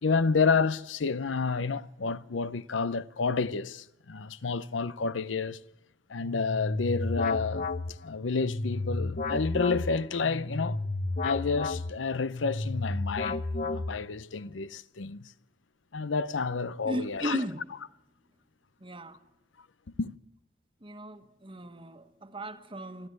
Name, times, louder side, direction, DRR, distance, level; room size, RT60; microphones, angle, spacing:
voice 1, 0.0-5.6 6.1-7.7 8.0-10.8 11.2-15.3 15.9-17.4 20.0-20.1, left 4 dB, 80° left, 0.7 m, -30 dB
sound 1, 6.2-14.3, left 2 dB, 45° left, 0.9 m, -32 dB
voice 2, 16.8-17.7 18.8-19.2 20.8-23.1, right 1 dB, 30° right, 1.4 m, -36 dB
24.0 x 13.5 x 9.5 m
head